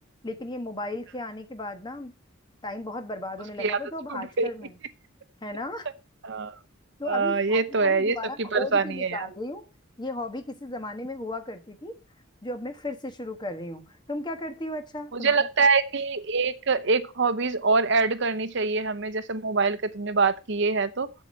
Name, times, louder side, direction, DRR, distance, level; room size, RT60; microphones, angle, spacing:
voice 1, 0.2-2.1 2.6-4.7 5.4-5.9 7.0-9.6 10.0-12.0 12.4-15.5, left 1 dB, 20° left, 1.3 m, -35 dB
voice 2, 4.1-4.5 6.2-6.6 7.0-9.3 15.1-21.1, right 4 dB, 60° right, 0.8 m, -24 dB
7.7 x 7.1 x 7.3 m
head